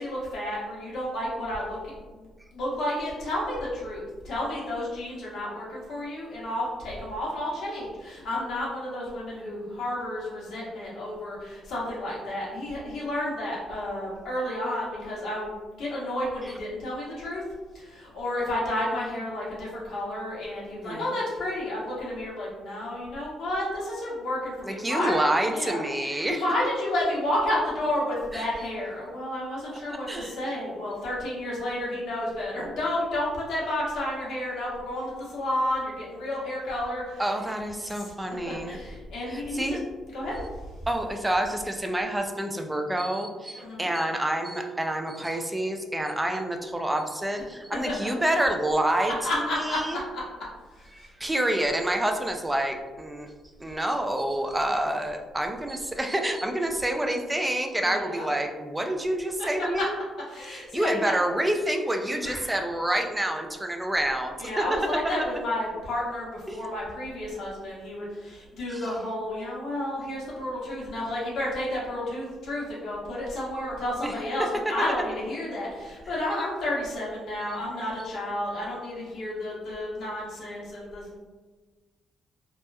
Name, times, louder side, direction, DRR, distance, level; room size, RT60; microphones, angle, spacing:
voice 1, 0.0-2.3 2.5-15.5 15.8-17.4 17.7-25.8 26.2-37.2 37.8-38.0 38.5-39.8 40.1-40.4 43.5-43.9 47.8-48.1 49.2-50.2 50.7-51.1 57.8-58.2 60.3-61.2 62.2-62.5 64.4-81.2, left 1 dB, 75° left, -6 dB, 0.9 m, -31 dB
voice 2, 20.8-21.1 24.6-26.4 28.3-28.5 29.9-30.3 37.2-38.8 39.3-39.8 40.9-50.0 50.9-53.3 53.6-59.9 60.5-64.6 66.5-66.6 68.7-68.9 74.0-74.1, right 1 dB, 10° right, 4 dB, 0.3 m, -28 dB
2.8 x 2.2 x 2.2 m, 1.3 s
cardioid pair, 90°, 0 cm